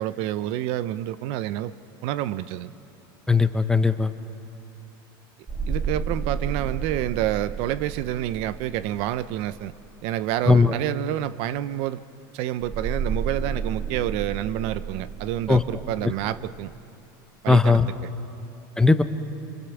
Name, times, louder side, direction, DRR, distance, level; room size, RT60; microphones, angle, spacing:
voice 1, 0.0-1.7 2.0-2.7 5.7-9.7 10.0-12.0 12.3-16.7 17.4-17.8, right 13 dB, 60° right, 15 dB, 0.7 m, -28 dB
voice 2, 3.3-4.1 10.5-10.7 15.5-15.6 17.5-17.9 18.8-19.0, left 4 dB, 5° left, 10 dB, 0.9 m, -18 dB
sound 1, 5.5-9.9 12.6-16.7, right 5 dB, 15° right, 2.0 m, -32 dB
26.0 x 24.5 x 7.1 m, 2.7 s
supercardioid pair, 125°, 11 cm